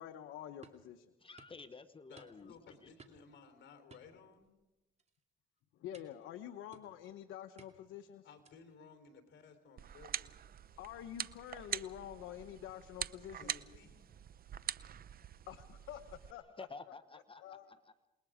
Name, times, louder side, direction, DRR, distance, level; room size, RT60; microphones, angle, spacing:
voice 1, 0.0-1.1 5.8-8.3 10.8-13.5 15.5-16.7 17.4-17.7, left 11 dB, 90° left, 8 dB, 1.0 m, -47 dB
sound 1, 0.6-0.9 1.4-1.6 2.2-2.6 3.0-3.3 3.9-4.7 5.0-5.2 5.9-6.3 6.7-7.1 7.6-8.0 8.4-8.8, right 4 dB, 35° right, 2.5 m, -60 dB
voice 2, 1.2-2.5 2.8-2.9 16.6-18.1, left 4 dB, 25° left, 12 dB, 1.1 m, -52 dB
voice 3, 2.1-4.5 8.2-10.3 13.4-14.1, left 5 dB, 70° left, 7 dB, 3.8 m, -58 dB
sound 2, 9.8-16.3, right 9 dB, 50° right, 0.6 m, -44 dB
28.0 x 20.5 x 5.0 m, 1.0 s
cardioid pair, 90°, 20 cm